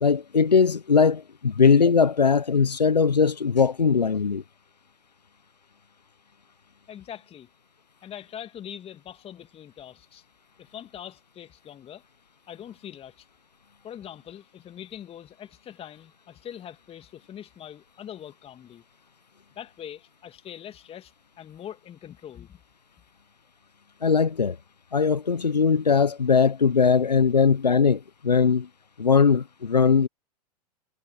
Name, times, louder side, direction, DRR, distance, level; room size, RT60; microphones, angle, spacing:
voice 1, 0.0-4.4 24.0-24.6 24.9-28.7 29.0-30.1, left 5 dB, 90° left, 0.9 m, -20 dB
voice 2, 6.9-7.5 8.0-10.2 10.6-12.0 12.5-13.3 13.8-18.8 19.6-22.6 27.4-27.5, left 10 dB, 30° left, 2.7 m, -43 dB
figure-of-eight pair, 95°, 21 cm